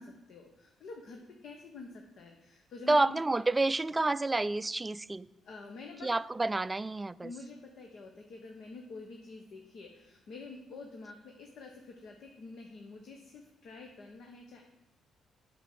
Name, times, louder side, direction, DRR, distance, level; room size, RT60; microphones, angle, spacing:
voice 1, 0.0-3.2 5.4-6.1 7.2-14.7, left 3 dB, 65° left, 1.2 m, -48 dB
voice 2, 2.9-5.3 6.0-7.3, right 2 dB, 20° right, 0.3 m, -29 dB
8.1 x 6.0 x 7.7 m
cardioid pair, 90°, 0 cm